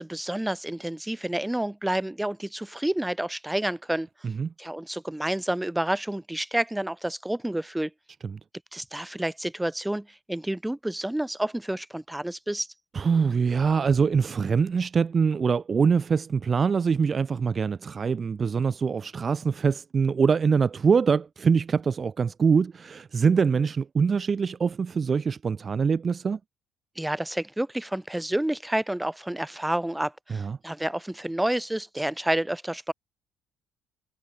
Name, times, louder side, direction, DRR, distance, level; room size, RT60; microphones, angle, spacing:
voice 1, 0.0-4.1 4.6-7.9 8.7-12.7 27.0-32.9, right 1 dB, 10° right, 4.1 m, -29 dB
voice 2, 12.9-26.4 30.3-30.6, right 5 dB, 40° right, 0.9 m, -24 dB
hypercardioid pair, 50°, 0 cm